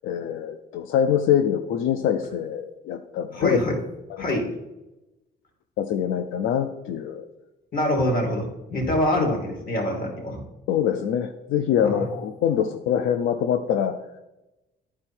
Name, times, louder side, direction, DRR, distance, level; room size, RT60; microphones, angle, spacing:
voice 1, 0.0-3.6 5.8-7.3 10.7-13.9, left 9 dB, 90° left, 7 dB, 0.5 m, -24 dB
voice 2, 3.3-3.7 4.2-4.5 7.7-10.4 11.8-12.0, left 1 dB, 45° left, 1 dB, 2.8 m, -25 dB
10.5 x 4.3 x 4.4 m, 0.99 s
cardioid pair, 90°, 20 cm